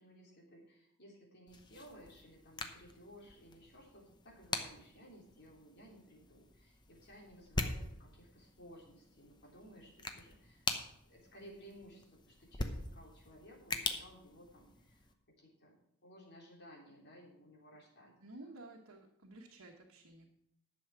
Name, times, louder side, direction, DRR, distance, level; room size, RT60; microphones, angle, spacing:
voice 1, 0.0-10.7 11.0-18.2, equal, 50° left, -2 dB, 3.5 m, -57 dB
sound 1, 1.5-15.1, left 3 dB, 20° left, 0.9 m, -44 dB
voice 2, 18.2-20.3, right 2 dB, 75° right, -1 dB, 1.3 m, -53 dB
11.0 x 7.1 x 6.0 m, 0.76 s
head